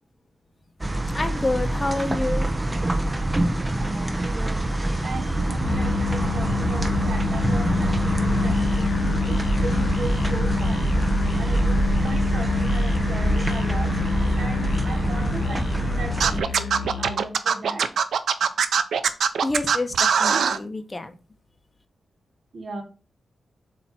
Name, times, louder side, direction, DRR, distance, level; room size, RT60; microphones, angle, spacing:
sound 1, 0.8-16.4, right 1 dB, 20° right, 0.9 m, -24 dB
voice 1, 1.1-2.5 19.4-21.1, left 2 dB, 25° left, 8 dB, 0.9 m, -28 dB
voice 2, 3.7-4.6 5.0-11.0 11.4-14.0 14.4-17.9 22.5-22.8, right 2 dB, 60° right, 0 dB, 2.1 m, -36 dB
Musical instrument, 5.5-17.3, left 6 dB, 85° left, 0.5 m, -28 dB
Scratching (performance technique), 16.2-20.6, right 6 dB, 80° right, 0.5 m, -21 dB
7.5 x 2.9 x 4.3 m, 0.34 s
cardioid pair, 80°, 0 cm